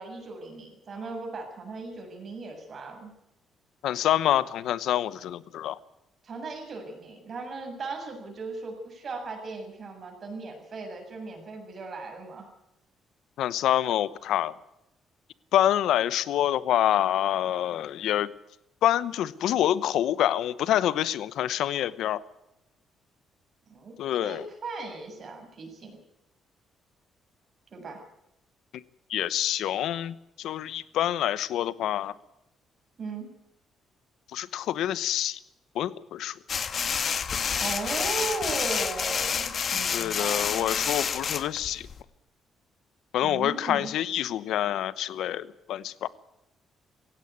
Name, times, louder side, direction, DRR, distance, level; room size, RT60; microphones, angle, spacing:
voice 1, 0.0-3.1 6.2-12.5 23.7-23.9 24.2-25.9 27.7-28.0 33.0-33.3 37.5-40.8 43.2-43.9, right 3 dB, 50° right, 4 dB, 7.3 m, -37 dB
voice 2, 3.8-5.8 13.4-14.5 15.5-18.3 18.8-22.2 24.0-24.4 28.7-28.8 29.1-32.1 34.3-35.4 35.7-36.3 39.9-41.9 43.1-46.1, left 12 dB, 80° left, 17 dB, 0.9 m, -26 dB
sound 1, 36.5-42.0, left 6 dB, 50° left, 1.4 m, -29 dB
17.5 x 16.5 x 9.6 m, 0.85 s
cardioid pair, 90°, 0 cm